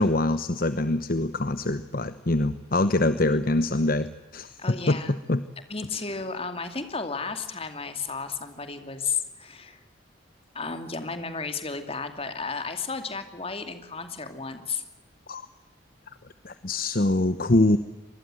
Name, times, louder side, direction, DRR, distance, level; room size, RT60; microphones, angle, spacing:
voice 1, 0.0-4.6 4.9-5.4 15.3-15.5 16.4-17.8, left 2 dB, 45° left, 12 dB, 0.9 m, -24 dB
voice 2, 4.6-5.1 5.7-9.8 10.5-14.8 17.1-17.2, left 5 dB, 30° left, 8 dB, 2.5 m, -33 dB
26.0 x 20.0 x 7.7 m, 1.0 s
head